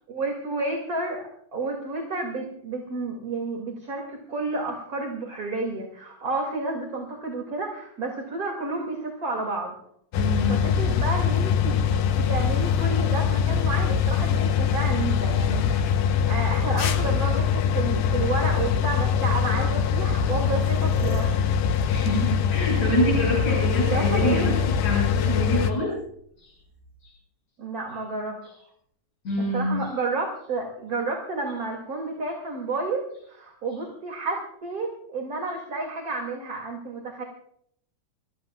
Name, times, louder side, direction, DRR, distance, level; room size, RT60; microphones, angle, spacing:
voice 1, 0.1-1.2 1.5-9.7 10.5-11.8 12.3-16.0 16.3-21.4 23.9-24.8 27.6-28.4 29.5-37.2, right 3 dB, 30° right, 0 dB, 2.6 m, -31 dB
sound 1, 10.1-25.7, left 7 dB, 85° left, 2.4 m, -23 dB
voice 2, 10.2-10.7 21.9-24.5 24.8-26.0 26.4-26.5 27.0-27.1 29.3-29.8, equal, 65° left, -5 dB, 7.2 m, -26 dB
sound 2, 11.2-15.1 15.8-16.5 17.6-17.7 18.4-18.6 19.7-19.8 20.0-24.5 26.4-27.1, equal, 40° left, 4.4 m, -42 dB
28.5 x 14.5 x 2.4 m, 0.66 s
omnidirectional pair, 3.6 m